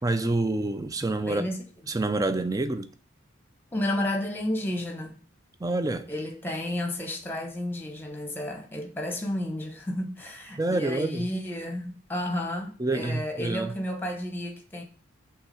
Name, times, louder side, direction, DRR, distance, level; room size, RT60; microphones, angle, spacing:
voice 1, 0.0-1.5 1.9-2.9 5.6-6.1 10.6-11.3 12.8-13.7, right 2 dB, 15° right, 0.4 m, -27 dB
voice 2, 1.3-1.6 3.7-5.1 6.1-14.8, left 1 dB, 10° left, 0.9 m, -32 dB
5.6 x 3.7 x 5.6 m
head